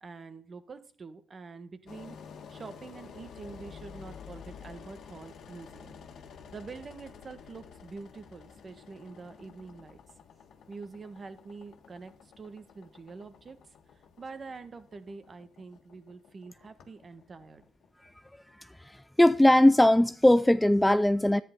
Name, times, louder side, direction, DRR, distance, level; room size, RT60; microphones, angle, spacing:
voice 1, 0.0-2.2 2.5-6.0 6.5-10.0 10.7-13.6 14.2-17.6, right 4 dB, 40° right, 1.5 m, -46 dB
Engine, 1.9-18.8, left 6 dB, 70° left, 1.5 m, -51 dB
voice 2, 18.8-21.4, left 1 dB, 5° left, 0.4 m, -20 dB
11.0 x 9.5 x 3.9 m
cardioid pair, 90°, 0 cm